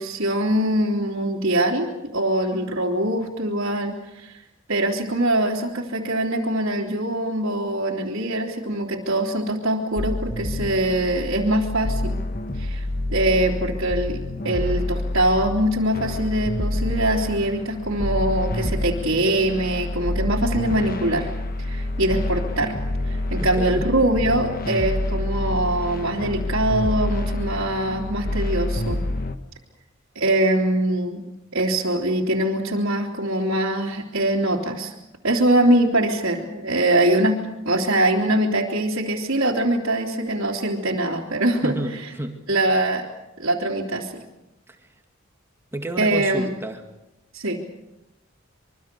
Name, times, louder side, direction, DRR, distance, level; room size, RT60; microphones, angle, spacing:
voice 1, 0.0-4.3 4.7-12.2 12.6-12.8 13.1-21.3 21.7-22.8 23.1-29.0 30.1-31.2 31.5-34.9 35.2-37.4 37.6-42.1 42.5-43.1 43.4-44.2 46.0-46.5 47.3-47.6, right 1 dB, 70° right, -4 dB, 3.2 m, -23 dB
sound 1, 10.0-29.4, left 1 dB, 40° left, 1.4 m, -27 dB
voice 2, 23.4-23.8 41.6-42.4 44.7-44.8 45.7-46.8, right 1 dB, 10° right, 4 dB, 2.1 m, -30 dB
25.5 x 24.0 x 6.9 m, 0.95 s
head